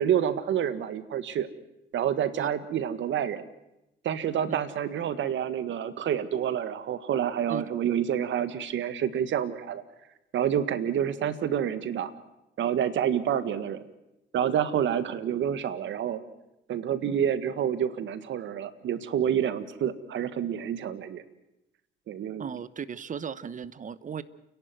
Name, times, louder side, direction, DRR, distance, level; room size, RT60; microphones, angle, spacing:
voice 1, 0.0-1.5 1.9-3.4 4.0-9.8 10.3-12.1 12.6-13.8 14.3-16.2 16.7-21.2 22.1-22.4, right 9 dB, 70° right, 12 dB, 1.7 m, -28 dB
voice 2, 22.4-24.2, right 7 dB, 40° right, 16 dB, 1.1 m, -36 dB
30.0 x 11.5 x 9.3 m, 0.90 s
cardioid pair, 90°, 20 cm